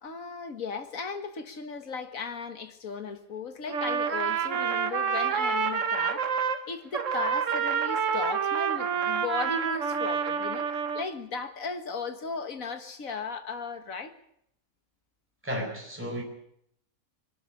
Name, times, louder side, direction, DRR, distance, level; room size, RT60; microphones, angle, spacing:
voice 1, 0.0-6.3 6.7-14.1, left 4 dB, 70° left, 2.1 m, -36 dB
Trumpet, 3.7-6.6 6.9-11.0, right 6 dB, 60° right, 1.5 m, -28 dB
voice 2, 15.4-16.2, equal, 10° right, 4.3 m, -33 dB
22.0 x 12.5 x 9.9 m
omnidirectional pair, 1.5 m